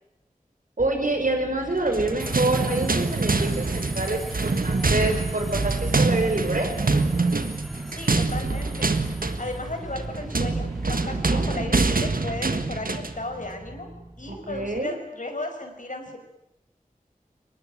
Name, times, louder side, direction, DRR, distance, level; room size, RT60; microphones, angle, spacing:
sound 1, 0.8-14.8, right 1 dB, 25° right, 4.2 m, -43 dB
voice 1, 0.8-6.7 11.2-11.5 14.3-14.9, right 2 dB, 70° right, 4 dB, 5.6 m, -27 dB
sound 2, 1.8-13.2, right 3 dB, 90° right, 1.6 m, -25 dB
Subway metro underground, 2.2-11.6, equal, ahead, 2.8 m, -41 dB
voice 2, 7.9-8.9 9.4-13.9 14.2-16.2, left 2 dB, 65° left, 5 dB, 5.4 m, -35 dB
23.5 x 19.5 x 9.9 m, 0.88 s
wide cardioid pair, 40°, 14 cm